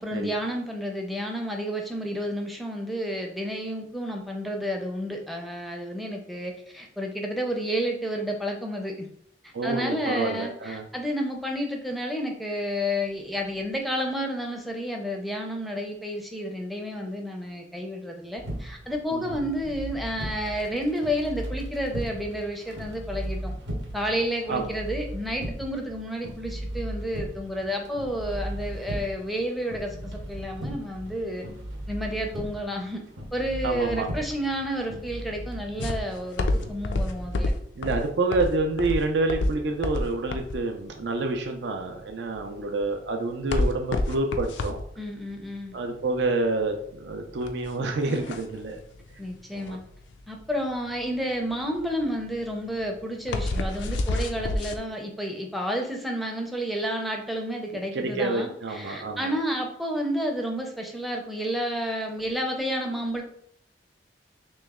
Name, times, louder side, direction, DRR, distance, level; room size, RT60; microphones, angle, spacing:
voice 1, 0.0-9.1 9.4-23.5 23.9-31.4 31.9-33.0 33.3-37.5 45.0-45.8 49.2-49.8 50.3-63.2, equal, ahead, 1 dB, 0.5 m, -30 dB
voice 2, 9.5-10.9 19.1-19.4 24.5-24.7 33.6-34.1 37.8-44.8 45.7-48.8 49.5-49.8 57.9-59.3, right 3 dB, 70° right, 4 dB, 0.4 m, -28 dB
sound 1, 18.4-37.4, equal, 85° right, 0.8 m, -37 dB
sound 2, 35.8-54.8, left 2 dB, 85° left, 0.4 m, -30 dB
3.0 x 3.0 x 3.6 m, 0.68 s
head